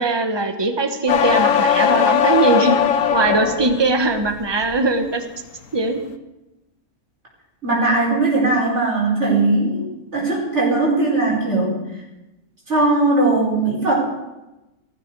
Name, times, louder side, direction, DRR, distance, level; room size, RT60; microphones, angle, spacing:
voice 1, 0.0-2.8 3.1-5.2 5.7-6.0, right 3 dB, 20° right, 6 dB, 1.3 m, -20 dB
sound 1, 1.1-3.8 4.2-4.8, left 8 dB, 70° left, 1.2 m, -18 dB
voice 2, 7.6-11.8 12.7-13.9, right 2 dB, 55° right, -5 dB, 5.0 m, -19 dB
17.0 x 14.5 x 4.8 m, 0.99 s
omnidirectional pair, 1.5 m